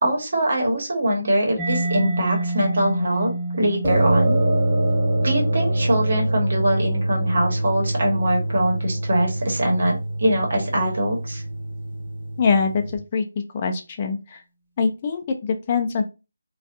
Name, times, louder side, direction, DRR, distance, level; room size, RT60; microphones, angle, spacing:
voice 1, 0.0-4.4 5.2-11.4, right 1 dB, 60° right, 0 dB, 1.1 m, -23 dB
Mallet percussion, 1.6-9.1, right 2 dB, ahead, 0.7 m, -31 dB
sound 1, 3.8-13.0, right 1 dB, 30° right, 1.1 m, -24 dB
voice 2, 12.4-13.2 13.5-14.4 14.8-16.0, left 5 dB, 30° left, 4 dB, 0.3 m, -23 dB
2.5 x 2.3 x 2.4 m, 0.28 s
figure-of-eight pair, 165°, 0 cm